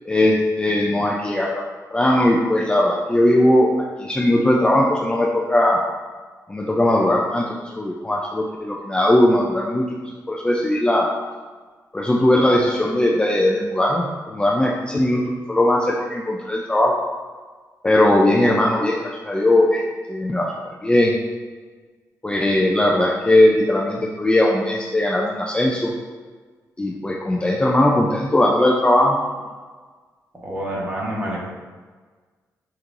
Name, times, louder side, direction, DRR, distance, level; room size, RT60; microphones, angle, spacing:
voice 1, 0.1-1.5 1.9-3.7 4.0-5.8 6.5-9.9 10.3-11.1 11.9-15.2 15.5-17.0 17.8-19.8 20.1-20.5 20.8-21.2 22.2-25.9 26.8-29.2, left 1 dB, 15° left, -2 dB, 0.4 m, -19 dB
voice 2, 30.4-31.4, right 1 dB, 25° right, -5 dB, 1.3 m, -27 dB
5.2 x 2.9 x 2.5 m, 1.4 s
cardioid pair, 85°, 7 cm